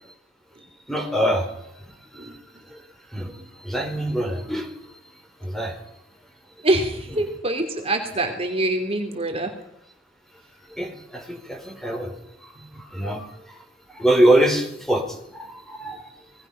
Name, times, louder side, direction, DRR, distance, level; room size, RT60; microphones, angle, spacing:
voice 1, 0.9-1.5 1.9-2.3 2.7-2.8 3.1-4.7 5.4-5.8 10.8-12.1 12.4-13.6 13.9-16.1, right 1 dB, ahead, 4 dB, 4.3 m, -24 dB
voice 2, 6.6-9.5 12.7-12.8, right 1 dB, 30° right, 4 dB, 2.9 m, -25 dB
26.5 x 19.5 x 5.8 m, 0.80 s
head